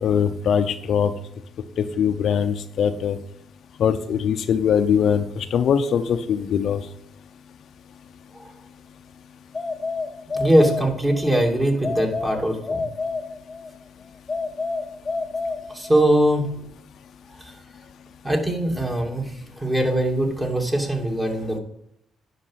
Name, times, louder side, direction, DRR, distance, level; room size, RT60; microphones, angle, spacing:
voice 1, 0.0-1.1 1.8-3.2 3.8-6.8, left 7 dB, 65° left, 8 dB, 0.7 m, -21 dB
sound 1, 9.5-11.3 11.8-13.7 14.3-16.2, left 3 dB, 30° left, 0.9 m, -29 dB
voice 2, 10.3-12.8 15.7-16.4 17.4-17.5 18.2-21.6, right 1 dB, 15° right, 2 dB, 2.5 m, -21 dB
10.0 x 6.1 x 5.7 m, 0.74 s
cardioid pair, 90°, 0 cm